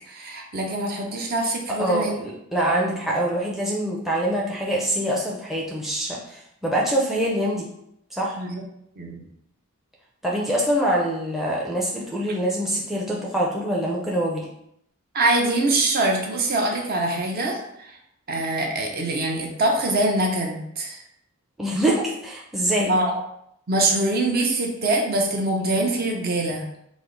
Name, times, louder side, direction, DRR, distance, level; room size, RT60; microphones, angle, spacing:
voice 1, 0.1-2.1 2.8-3.0 8.4-8.6 9.0-9.3 15.1-18.0 18.3-21.0 22.9-23.1 23.7-26.7, right 2 dB, 45° right, 1 dB, 0.7 m, -24 dB
voice 2, 1.7-7.7 8.1-8.4 10.2-14.5 21.6-22.9, right 1 dB, ahead, -3 dB, 0.5 m, -24 dB
4.8 x 2.0 x 3.8 m, 0.75 s
head